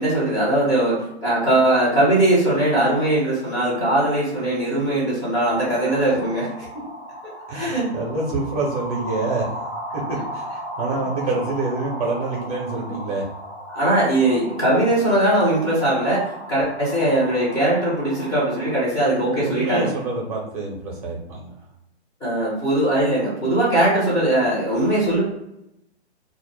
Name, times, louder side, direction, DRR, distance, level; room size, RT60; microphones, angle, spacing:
voice 1, 0.0-6.7 7.5-7.9 13.7-19.9 22.2-25.2, right 1 dB, 10° left, -8 dB, 0.7 m, -20 dB
sound 1, 5.6-18.8, equal, 75° left, 1.0 m, -36 dB
voice 2, 7.5-9.5 9.9-13.3 19.4-21.5, right 3 dB, 35° right, -3 dB, 0.7 m, -27 dB
2.2 x 2.0 x 3.1 m, 0.82 s
figure-of-eight pair, 125°, 33 cm